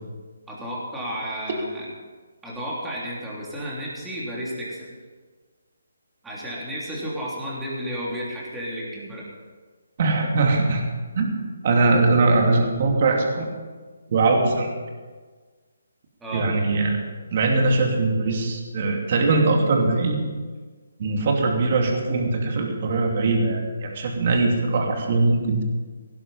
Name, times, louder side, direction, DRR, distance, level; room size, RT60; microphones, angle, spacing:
voice 1, 0.5-1.9 2.4-5.0 6.2-9.3 16.2-16.5, equal, 5° right, -6 dB, 3.3 m, -32 dB
voice 2, 10.0-10.8 11.1-11.3 11.6-13.5 14.1-14.7 16.3-17.0 17.3-20.2 21.0-25.6, right 3 dB, 40° right, 1 dB, 2.7 m, -21 dB
17.5 x 11.0 x 5.6 m, 1.4 s
hypercardioid pair, 165°, 0 cm